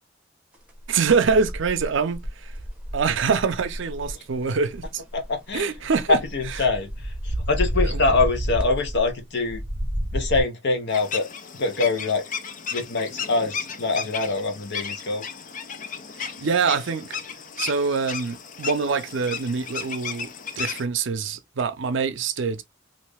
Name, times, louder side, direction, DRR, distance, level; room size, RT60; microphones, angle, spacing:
sound 1, 0.8-4.2 4.7-4.9 5.1-9.1 9.5-10.4, equal, 5° right, 0.9 m, -30 dB
voice 1, 0.9-2.5 2.9-5.0 5.5-6.2 6.5-6.6 7.8-8.0 16.2-17.2 17.6-20.3 20.6-22.6, right 5 dB, 70° right, 0.5 m, -25 dB
voice 2, 5.1-5.7 6.1-6.9 7.2-9.6 10.1-11.3 11.6-12.2 12.7-15.2, left 3 dB, 65° left, 0.9 m, -24 dB
sound 2, 10.9-20.8, left 6 dB, 45° left, 0.5 m, -34 dB
3.1 x 2.6 x 3.4 m
head